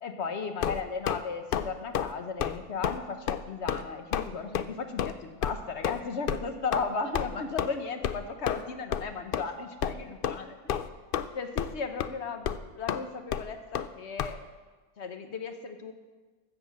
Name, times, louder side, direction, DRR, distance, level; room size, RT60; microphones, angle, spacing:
voice 1, 0.0-10.7 11.3-14.4 15.0-15.9, left 4 dB, 50° left, 7 dB, 1.3 m, -35 dB
sound 1, 0.6-1.2 1.5-1.7 1.9-2.1 2.4-2.6 2.8-3.0 3.3-3.4 3.7-3.8 4.1-4.3 4.5-4.7 5.0-5.1 5.4-5.5 5.8-6.0 6.3-6.4 6.7-6.8 7.1-7.3 7.6-7.7 8.0-8.2 8.5-8.6 8.9-9.0 9.3-9.4 9.8-9.9 10.2-10.4 10.7-11.3 11.6-11.7 12.0-12.1 12.5-12.6 12.9-13.0 13.3-13.4 13.7-13.9 14.2-14.3, left 9 dB, 70° left, 0.5 m, -29 dB
13.5 x 7.8 x 7.5 m, 1.3 s
omnidirectional pair, 1.5 m